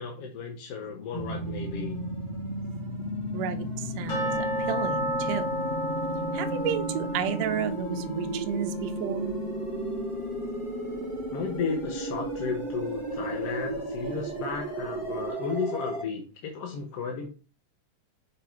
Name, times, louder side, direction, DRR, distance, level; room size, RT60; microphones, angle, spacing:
voice 1, 0.0-2.0 11.3-17.3, left 5 dB, 65° left, 1 dB, 1.8 m, -34 dB
sound 1, 1.1-16.0, right 1 dB, 15° left, 1.0 m, -34 dB
voice 2, 3.3-5.6 6.3-9.4, right 8 dB, 70° right, 7 dB, 1.7 m, -32 dB
sound 2, 4.1-10.9 11.2-11.3 11.8-11.9 12.5-12.6, equal, 40° left, 3.1 m, -34 dB
6.8 x 3.8 x 4.6 m, 0.35 s
omnidirectional pair, 3.5 m